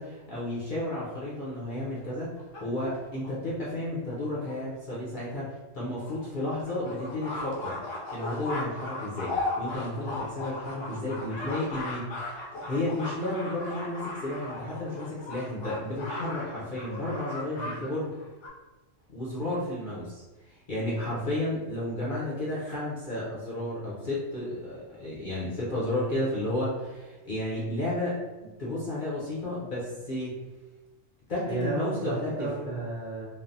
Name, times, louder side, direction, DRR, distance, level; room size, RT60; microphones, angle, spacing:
voice 1, 0.0-5.5 5.7-7.8 8.1-12.1 12.7-18.1 19.1-28.2 28.6-30.3 31.3-32.5, left 1 dB, 50° left, -7 dB, 0.6 m, -32 dB
sound 1, 1.7-3.3 4.1-4.2 4.5-4.6 4.9-5.0 5.3-5.4 5.9-17.8 18.1-18.5, left 2 dB, 70° left, 1.0 m, -37 dB
voice 2, 17.5-17.9 31.5-33.2, right 3 dB, 50° right, -8 dB, 0.6 m, -33 dB
3.2 x 2.0 x 2.6 m, 1.2 s
omnidirectional pair, 1.4 m